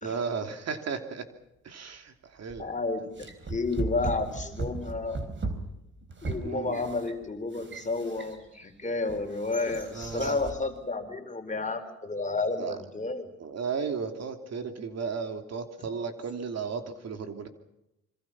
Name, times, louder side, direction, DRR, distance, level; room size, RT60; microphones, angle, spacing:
voice 1, 0.0-1.3 1.6-2.6 6.4-6.8 9.9-10.4 12.6-12.8 13.4-17.5, right 5 dB, 60° right, 6 dB, 3.0 m, -34 dB
sound 1, 2.5-2.7 3.2-8.6 9.1-10.6, right 3 dB, 40° right, 4.6 m, -37 dB
voice 2, 2.6-5.2 6.2-13.3, left 3 dB, 25° left, 6 dB, 4.4 m, -31 dB
26.5 x 25.5 x 6.1 m, 0.87 s
cardioid pair, 90°, 30 cm